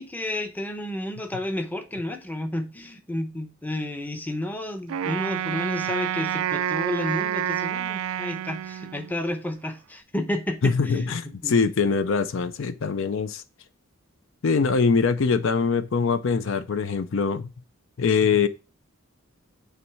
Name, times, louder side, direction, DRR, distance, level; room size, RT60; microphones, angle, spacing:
voice 1, 0.0-11.1 11.4-11.6 15.6-15.8, left 1 dB, 10° left, 0.7 m, -31 dB
Wind instrument woodwind instrument, 4.9-9.3, right 10 dB, 75° right, 0.3 m, -28 dB
voice 2, 10.6-13.4 14.4-17.5 18.0-18.5, left 5 dB, 60° left, 0.4 m, -23 dB
9.1 x 3.1 x 4.6 m
head